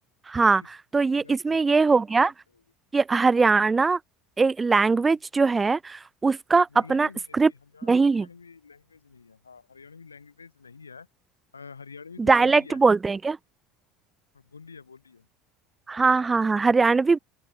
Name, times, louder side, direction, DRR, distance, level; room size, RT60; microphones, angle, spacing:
voice 1, 0.3-0.6 0.9-2.3 2.9-4.0 4.4-7.1 7.3-7.5 7.8-8.3 12.3-13.4 15.9-17.2, right 4 dB, 20° right, 0.6 m, -21 dB
voice 2, 1.2-1.7 2.5-2.6 6.7-11.1 11.5-12.8 14.3-15.3, left 5 dB, 80° left, 5.1 m, -47 dB
open air
figure-of-eight pair, 65°, 0 cm